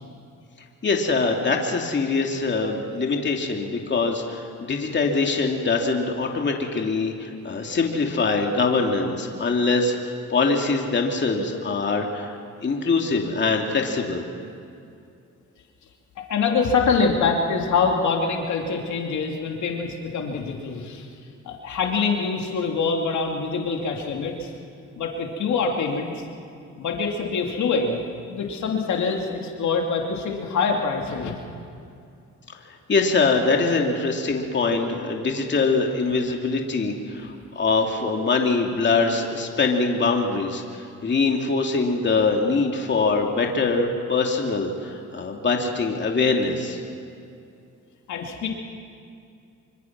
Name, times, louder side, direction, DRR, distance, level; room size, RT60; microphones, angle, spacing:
voice 1, 0.8-14.2 32.9-46.8, left 4 dB, 35° left, 1 dB, 2.7 m, -23 dB
voice 2, 16.3-21.1 21.4-24.5 25.0-26.1 26.8-31.3 48.1-48.5, left 4 dB, 70° left, 1 dB, 2.8 m, -25 dB
25.5 x 24.5 x 6.1 m, 2.5 s
cardioid pair, 90°, 30 cm